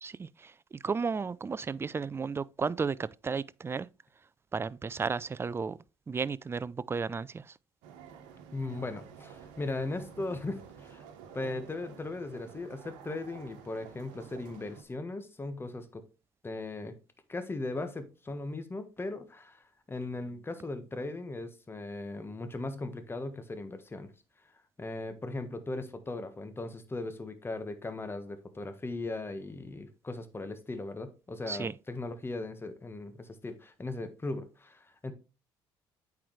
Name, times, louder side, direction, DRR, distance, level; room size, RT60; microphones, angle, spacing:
voice 1, 0.0-3.9 4.5-5.8 6.1-7.5 31.5-31.7, right 5 dB, 25° right, 0.4 m, -34 dB
sound 1, 7.8-14.8, right 7 dB, 85° right, 1.1 m, -50 dB
voice 2, 8.5-11.0 11.3-16.0 16.4-16.9 17.3-24.1 24.8-35.1, left 2 dB, 25° left, 1.3 m, -38 dB
8.5 x 4.7 x 3.2 m
supercardioid pair, 65°, 10 cm